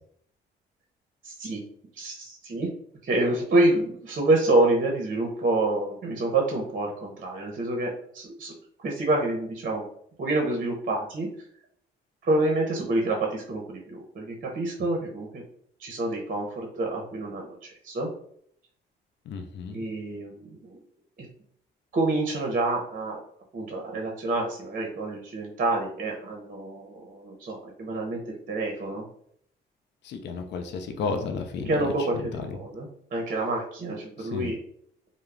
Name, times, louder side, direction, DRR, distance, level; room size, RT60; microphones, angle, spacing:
voice 1, 1.2-1.6 2.0-2.7 3.0-8.5 8.8-9.8 10.2-11.3 12.2-15.4 15.8-18.1 19.7-20.8 21.9-23.2 23.5-28.2 28.5-29.0 31.6-34.5, right 2 dB, 45° right, 0 dB, 0.7 m, -27 dB
voice 2, 19.3-19.9 30.0-32.6 34.2-34.5, left 5 dB, 60° left, 6 dB, 0.4 m, -33 dB
2.3 x 2.0 x 3.2 m, 0.65 s
cardioid pair, 90°, 20 cm